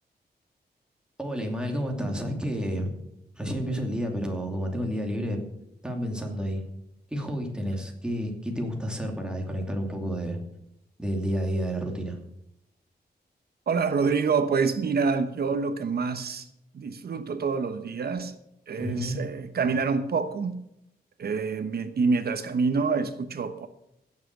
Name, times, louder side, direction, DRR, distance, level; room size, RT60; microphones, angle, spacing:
voice 1, 1.2-3.0 3.4-5.4 5.8-6.6 7.1-10.4 11.0-12.2 18.8-19.2, equal, 5° right, 1 dB, 2.7 m, -30 dB
voice 2, 13.7-16.5 16.7-18.3 18.7-20.6 21.2-23.7, right 5 dB, 65° right, 9 dB, 1.1 m, -27 dB
16.5 x 7.7 x 6.6 m, 0.82 s
wide cardioid pair, 155°, 17 cm